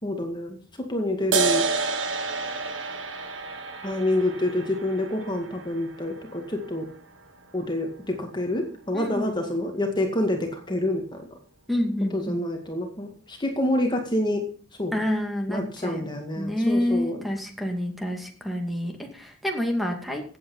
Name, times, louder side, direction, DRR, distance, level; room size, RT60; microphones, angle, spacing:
voice 1, 0.0-1.9 3.8-6.9 7.5-11.2 12.1-14.5 14.8-14.9 15.5-17.2, left 1 dB, 25° left, 3 dB, 2.1 m, -27 dB
sound 1, 1.3-8.3, right 4 dB, 85° right, 1.8 m, -31 dB
voice 2, 8.9-9.3 11.7-12.4 14.9-16.1 16.3-20.4, left 1 dB, ahead, 3 dB, 2.5 m, -28 dB
16.5 x 8.6 x 5.6 m, 0.42 s
head